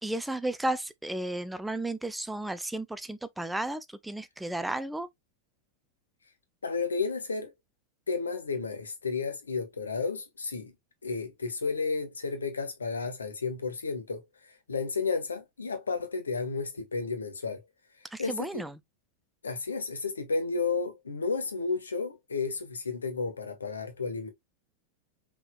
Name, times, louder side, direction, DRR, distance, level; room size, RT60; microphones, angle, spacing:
voice 1, 0.0-5.1 18.1-18.8, right 1 dB, 5° right, 0.5 m, -33 dB
voice 2, 6.6-7.5 8.1-10.7 11.0-17.6 18.2-18.6 19.4-24.3, left 4 dB, 75° left, 1.4 m, -32 dB
5.8 x 3.7 x 2.3 m
figure-of-eight pair, 90°, 0 cm